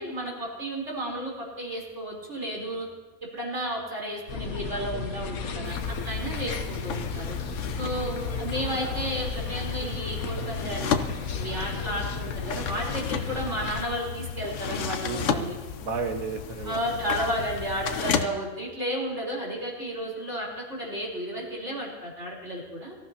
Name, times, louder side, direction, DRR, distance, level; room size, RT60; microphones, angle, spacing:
voice 1, 0.0-2.9 3.3-5.8 6.0-7.4 7.8-11.0 11.3-15.6 16.7-23.0, equal, 55° right, -3 dB, 4.5 m, -32 dB
sound 1, 4.3-13.8, left 4 dB, 90° left, 1.5 m, -34 dB
sound 2, 5.6-18.2, left 7 dB, 65° left, 1.1 m, -33 dB
voice 2, 15.0-17.2, right 4 dB, 80° right, 4 dB, 1.8 m, -35 dB
23.5 x 14.5 x 2.9 m, 1.2 s
omnidirectional pair, 1.5 m